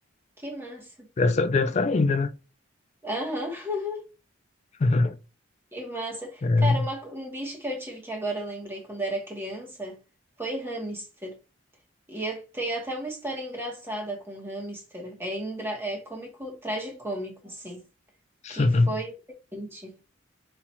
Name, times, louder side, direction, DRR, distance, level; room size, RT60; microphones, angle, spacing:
voice 1, 0.4-1.1 3.0-4.1 5.7-10.0 10.4-11.4 12.1-17.8 18.5-19.1 19.5-20.0, right 1 dB, 10° right, 1.0 m, -34 dB
voice 2, 1.2-2.3 4.8-5.2 6.4-6.8 18.4-18.9, left 3 dB, 35° left, 0.4 m, -22 dB
4.3 x 2.4 x 4.3 m
head